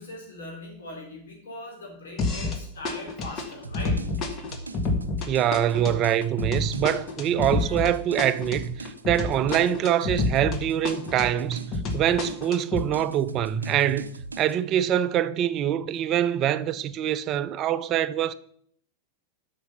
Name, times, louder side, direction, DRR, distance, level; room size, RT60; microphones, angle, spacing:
voice 1, 0.0-4.0 7.5-7.8, left 2 dB, 65° left, 3.8 m, -40 dB
sound 1, 2.2-2.6 2.8-10.6 10.8-12.8, left 2 dB, 35° left, 1.5 m, -29 dB
sound 2, 3.6-14.5, right 3 dB, 75° right, 0.6 m, -41 dB
voice 2, 5.3-14.1 14.4-18.3, right 10 dB, 35° right, 0.6 m, -24 dB
8.0 x 6.2 x 6.7 m
figure-of-eight pair, 90°, 0 cm